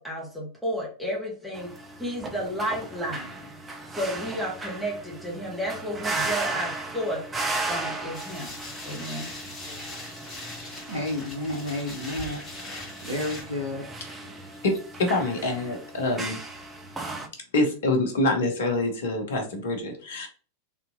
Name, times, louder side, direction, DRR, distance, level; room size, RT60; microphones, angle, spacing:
voice 1, 0.0-1.7 2.0-3.5 3.9-7.2 7.7-8.5 8.8-9.3, equal, ahead, 1.2 m, -32 dB
sound 1, 1.5-17.3, right 3 dB, 15° right, 0.6 m, -36 dB
sound 2, 8.1-13.4, left 1 dB, 20° left, 1.5 m, -40 dB
voice 2, 10.9-12.4 13.0-13.9 14.2-14.3, left 1 dB, 75° right, 0.9 m, -31 dB
voice 3, 14.6-16.4 17.5-20.3, left 2 dB, 60° left, 1.0 m, -26 dB
3.5 x 2.7 x 2.7 m
figure-of-eight pair, 90°, 0 cm